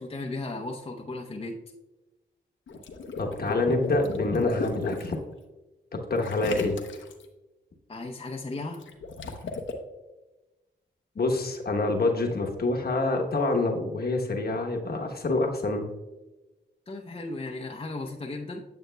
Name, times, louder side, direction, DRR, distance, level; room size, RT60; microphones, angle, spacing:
voice 1, 0.0-1.6 7.9-8.8 16.9-18.6, left 2 dB, 30° left, 0 dB, 0.7 m, -35 dB
Water / Liquid, 2.7-5.1 6.2-7.2 8.7-9.7, left 3 dB, 80° left, 0.8 m, -34 dB
voice 2, 3.2-5.2 6.1-6.8 11.1-15.8, left 2 dB, 55° left, 2 dB, 1.0 m, -26 dB
9.0 x 6.6 x 2.2 m, 1.1 s
cardioid pair, 55°, 19 cm